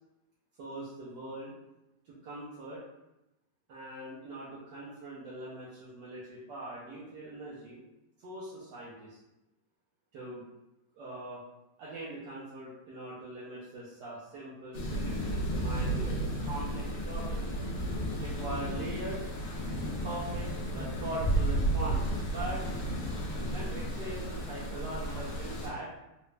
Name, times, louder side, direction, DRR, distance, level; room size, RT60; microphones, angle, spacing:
voice 1, 0.6-1.5 2.0-2.8 3.7-7.8 8.2-9.2 10.1-10.4 10.9-11.4 11.8-17.5 18.2-19.2 19.8-22.6 23.5-25.9, right 2 dB, 65° right, -8 dB, 1.1 m, -41 dB
sound 1, 14.7-25.7, right 1 dB, 80° left, 0.7 m, -33 dB
3.8 x 2.2 x 3.2 m, 0.95 s
omnidirectional pair, 2.4 m